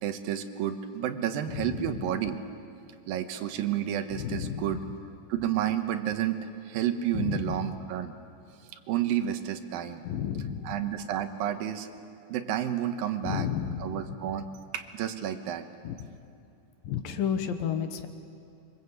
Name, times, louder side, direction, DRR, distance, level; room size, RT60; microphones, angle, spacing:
voice 1, 0.0-2.4 3.1-4.8 5.3-8.1 8.9-10.0 10.6-11.9 12.3-13.5 13.8-14.5 14.7-15.6, right 10 dB, 80° right, 8 dB, 2.8 m, -30 dB
voice 2, 4.1-4.6 7.1-7.5 10.1-10.7 13.2-14.0 15.8-15.9 16.9-18.1, left 8 dB, 75° left, 8 dB, 2.9 m, -31 dB
25.0 x 24.0 x 8.2 m, 2.5 s
omnidirectional pair, 4.2 m